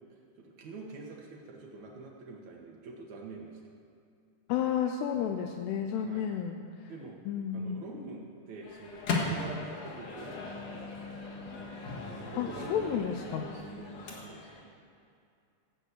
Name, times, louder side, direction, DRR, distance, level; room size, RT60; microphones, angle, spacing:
voice 1, 0.4-3.7 5.1-5.4 5.9-6.3 6.9-7.2 7.5-10.9 12.3-14.6, right 3 dB, 85° right, -2 dB, 1.6 m, -46 dB
voice 2, 4.5-6.6 7.3-7.8 12.4-13.4, left 9 dB, 80° left, 4 dB, 2.5 m, -31 dB
Microwave oven, 8.6-14.6, left 3 dB, 60° left, 1.8 m, -38 dB
15.5 x 6.0 x 8.1 m, 2.4 s
omnidirectional pair, 5.2 m